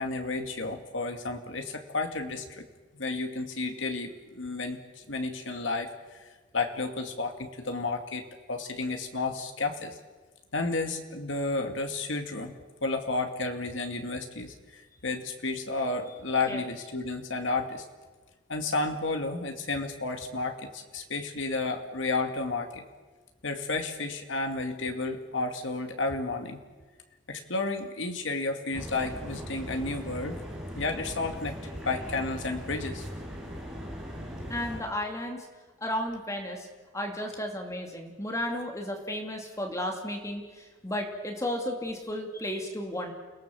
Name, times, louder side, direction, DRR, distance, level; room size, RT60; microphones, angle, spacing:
voice 1, 0.0-2.7 2.9-6.3 6.5-10.0 10.5-17.8 18.5-22.8 23.4-26.6 27.3-30.4 30.8-31.6 31.9-33.0, left 3 dB, 75° left, 5 dB, 2.2 m, -32 dB
sound 1, 28.7-34.8, equal, 5° right, 7.5 m, -39 dB
voice 2, 34.5-35.5 35.8-36.7 36.9-43.1, left 1 dB, 15° left, 2 dB, 2.5 m, -33 dB
29.5 x 18.5 x 7.1 m, 1.3 s
head